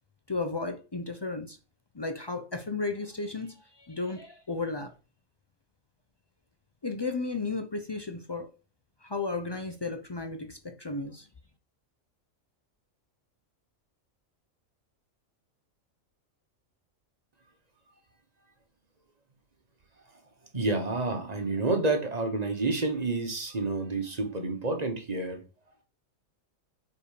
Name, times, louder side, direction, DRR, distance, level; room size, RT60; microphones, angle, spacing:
voice 1, 0.3-1.6 1.9-4.9 6.8-8.5 9.0-11.3, left 3 dB, 40° left, 0.3 m, -34 dB
voice 2, 20.5-25.4, right 2 dB, 30° right, 1.2 m, -29 dB
5.2 x 4.6 x 4.9 m
omnidirectional pair, 1.4 m